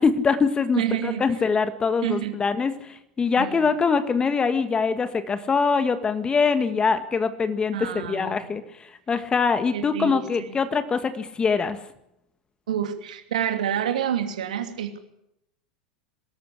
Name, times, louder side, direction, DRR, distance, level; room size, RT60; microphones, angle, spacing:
voice 1, 0.0-11.8, left 5 dB, 20° left, 10 dB, 1.7 m, -23 dB
voice 2, 0.7-1.2 2.0-2.3 3.4-3.7 7.7-8.5 9.7-10.2 12.7-15.0, right 9 dB, 70° right, 6 dB, 2.7 m, -28 dB
23.0 x 13.5 x 8.4 m, 0.84 s
figure-of-eight pair, 85°, 4 cm